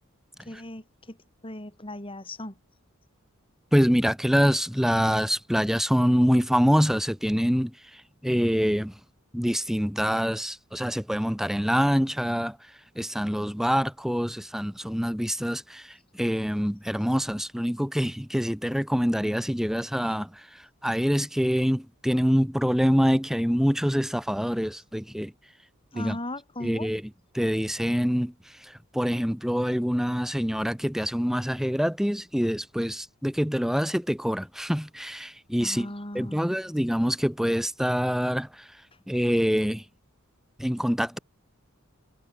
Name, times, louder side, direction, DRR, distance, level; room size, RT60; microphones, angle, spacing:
voice 1, 0.4-1.2 1.4-2.6 25.9-26.9 35.6-36.5, left 1 dB, 25° left, 4.6 m, -37 dB
voice 2, 3.7-7.7 8.2-8.9 9.3-12.6 13.0-15.9 16.2-20.3 20.8-25.3 25.9-26.2 26.6-27.0 27.3-28.3 28.9-38.6 39.1-39.8 40.6-41.2, equal, ahead, 2.1 m, -25 dB
head